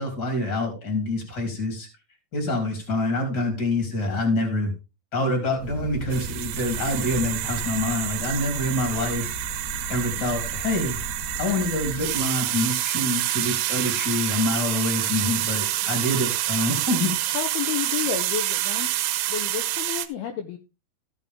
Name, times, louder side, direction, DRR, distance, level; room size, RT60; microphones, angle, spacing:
voice 1, 0.0-1.9 2.3-4.7 5.1-9.4 9.9-11.0 11.4-17.4, left 1 dB, 25° left, 3 dB, 3.3 m, -26 dB
sound 1, 5.6-12.3, equal, ahead, 2.7 m, -36 dB
sound 2, 6.1-20.1, right 14 dB, 90° right, 3.0 m, -28 dB
voice 2, 17.3-18.9 19.3-20.6, left 10 dB, 80° left, 6 dB, 2.5 m, -30 dB
15.0 x 6.8 x 3.7 m, 0.29 s
omnidirectional pair, 5.1 m